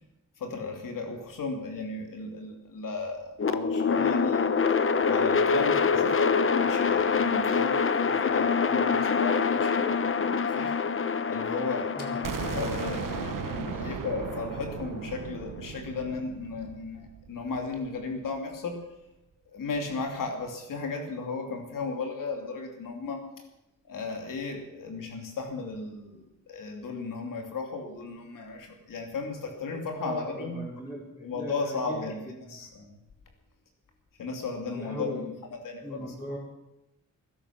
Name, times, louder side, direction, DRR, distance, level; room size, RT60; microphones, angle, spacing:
voice 1, 0.4-4.5 5.1-10.7 11.3-18.8 19.5-23.2 23.9-26.2 26.5-30.6 31.2-32.2 32.5-32.9 34.2-35.3 35.6-36.0, left 4 dB, 85° left, 3 dB, 2.9 m, -35 dB
sound 1, 3.4-15.5, left 5 dB, 40° left, 1.0 m, -26 dB
voice 2, 11.9-12.4 13.7-13.9 30.0-32.7 34.7-35.2 35.8-36.4, equal, 15° left, -5 dB, 4.5 m, -39 dB
sound 2, 12.2-18.0, right 8 dB, 80° right, 1.0 m, -37 dB
20.0 x 11.0 x 6.1 m, 0.90 s
cardioid pair, 90°, 32 cm